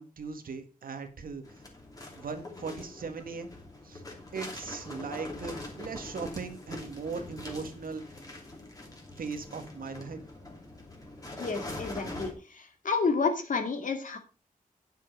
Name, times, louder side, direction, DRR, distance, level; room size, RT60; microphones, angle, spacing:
voice 1, 0.0-1.6 2.2-3.5 3.8-4.0 4.3-8.1 9.2-10.2, right 5 dB, 75° right, 7 dB, 1.8 m, -39 dB
sound 1, 1.4-12.3, left 2 dB, 25° left, 2.9 m, -43 dB
voice 2, 11.4-12.3 12.8-14.2, left 4 dB, 65° left, 5 dB, 2.3 m, -29 dB
10.0 x 7.5 x 5.3 m, 0.34 s
wide cardioid pair, 155°, 15 cm